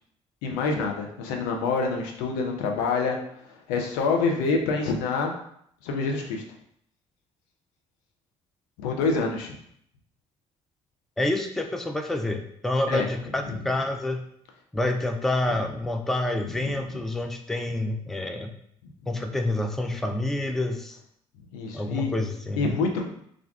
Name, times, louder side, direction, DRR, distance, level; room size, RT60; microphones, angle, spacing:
voice 1, 0.4-3.2 3.7-5.3 5.8-6.4 8.8-9.6 12.9-13.1 16.6-16.7 21.5-22.1 22.6-23.0, left 4 dB, 70° left, 2 dB, 0.5 m, -26 dB
voice 2, 11.2-14.2 14.7-18.5 19.1-21.0 21.7-22.8, left 2 dB, ahead, 5 dB, 0.3 m, -28 dB
2.4 x 2.2 x 3.5 m, 0.69 s
figure-of-eight pair, 45°, 17 cm